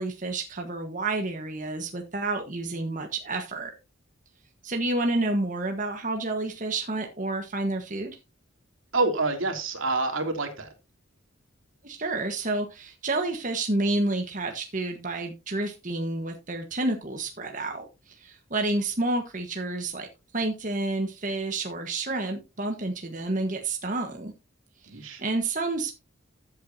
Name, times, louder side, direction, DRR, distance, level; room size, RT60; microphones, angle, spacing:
voice 1, 0.0-3.7 4.6-8.2 11.8-20.1 20.3-24.3 24.8-26.0, right 2 dB, 40° right, 1.4 m, -29 dB
voice 2, 8.9-10.7 24.9-25.2, right 3 dB, 75° right, 2.9 m, -27 dB
14.5 x 8.1 x 2.8 m
head